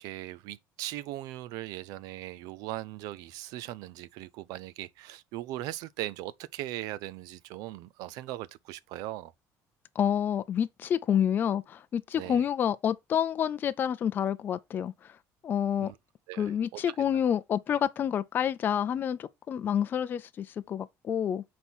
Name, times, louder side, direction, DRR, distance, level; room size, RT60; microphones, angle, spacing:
voice 1, 0.0-9.3 12.1-12.4 15.8-16.0 16.3-17.0, right 15 dB, 80° right, 0.5 m, -39 dB
voice 2, 10.0-14.9 15.4-15.9 16.4-21.4, left 9 dB, 30° left, 0.4 m, -28 dB
6.1 x 4.3 x 5.4 m
cardioid pair, 165°, 6 cm